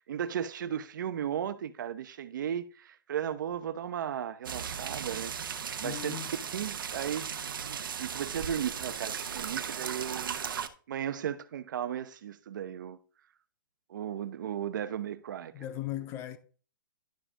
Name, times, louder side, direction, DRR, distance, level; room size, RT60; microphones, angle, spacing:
voice 1, 0.1-6.2 6.5-10.4 10.9-13.0 13.9-15.6, right 9 dB, 65° right, 0.8 m, -36 dB
sound 1, 4.5-10.7, right 7 dB, 85° right, 1.0 m, -37 dB
voice 2, 5.8-6.3 15.5-16.4, left 12 dB, 25° left, 0.8 m, -37 dB
11.5 x 5.0 x 3.7 m
hypercardioid pair, 155°, 11 cm